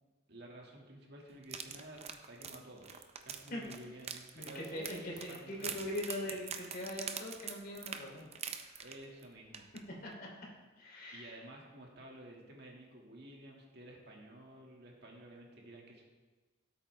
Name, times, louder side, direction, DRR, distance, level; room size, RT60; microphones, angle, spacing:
voice 1, 0.3-6.0 8.8-9.7 11.1-16.0, right 1 dB, 55° right, -1 dB, 2.1 m, -52 dB
sound 1, 1.4-9.2 9.5-9.8 10.1-10.2, right 7 dB, 30° right, 0.6 m, -44 dB
voice 2, 4.3-8.2 8.6-8.9 10.0-10.3 10.8-11.4, left 1 dB, 45° left, -3 dB, 3.1 m, -42 dB
17.0 x 8.5 x 3.4 m, 1.3 s
head